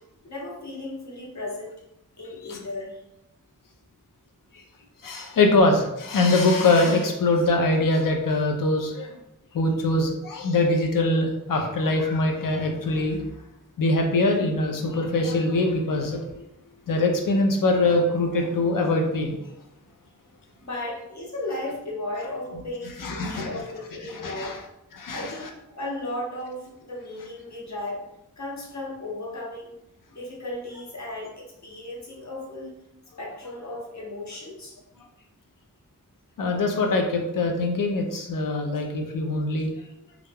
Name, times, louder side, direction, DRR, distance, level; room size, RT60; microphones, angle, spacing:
voice 1, 0.2-1.8 2.2-3.0 20.6-24.6 25.1-28.1 28.4-29.7 30.1-32.7 33.2-34.8, left 1 dB, 60° left, -4 dB, 0.9 m, -35 dB
voice 2, 5.0-9.2 9.5-13.2 13.8-16.4 16.9-19.4 23.0-23.6 24.0-24.6 24.9-25.3 36.4-39.7, left 2 dB, 85° left, 3 dB, 0.5 m, -23 dB
2.4 x 2.2 x 3.3 m, 0.85 s
wide cardioid pair, 90°, 32 cm